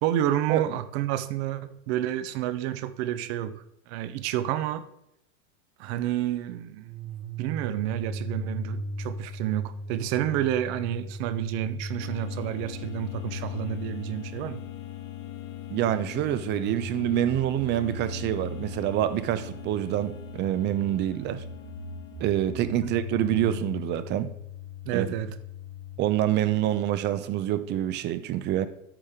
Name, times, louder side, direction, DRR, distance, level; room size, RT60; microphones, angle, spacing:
voice 1, 0.0-4.8 5.8-6.9 7.4-14.6 22.8-22.9 24.8-25.3, right 12 dB, 50° right, 0.8 m, -29 dB
sound 1, 6.8-26.0, left 2 dB, 75° right, 1.8 m, -38 dB
sound 2, 12.0-22.8, left 12 dB, 45° left, 1.7 m, -44 dB
voice 2, 15.7-21.4 22.2-24.3 24.9-25.1 26.0-28.7, right 12 dB, 25° right, 0.6 m, -26 dB
13.5 x 5.0 x 3.6 m
supercardioid pair, 140°, 41 cm